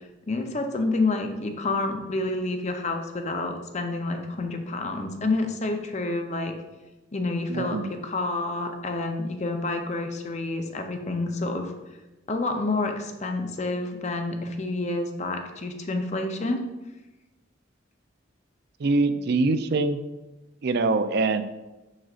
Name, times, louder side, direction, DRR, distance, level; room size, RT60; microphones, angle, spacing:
voice 1, 0.3-6.5 7.1-11.7 12.3-16.6, left 2 dB, 35° left, 5 dB, 0.6 m, -28 dB
voice 2, 7.5-7.9 18.8-20.0 20.6-21.4, right 3 dB, 55° right, 10 dB, 0.4 m, -23 dB
6.3 x 6.2 x 2.5 m, 1.1 s
head